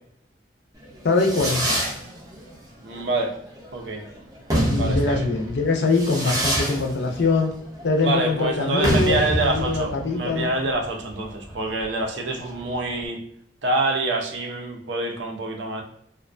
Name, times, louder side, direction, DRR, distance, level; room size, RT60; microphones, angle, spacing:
Fireworks, 0.8-13.0, equal, 20° right, 0.5 m, -28 dB
voice 1, 1.0-1.8 4.7-7.5 7.8-10.5, left 3 dB, 65° left, 2 dB, 0.5 m, -23 dB
voice 2, 2.8-3.4 3.7-4.0 4.7-5.3 8.0-13.2 13.6-15.8, right 2 dB, 80° right, 3 dB, 0.5 m, -26 dB
2.4 x 2.2 x 2.4 m, 0.69 s
head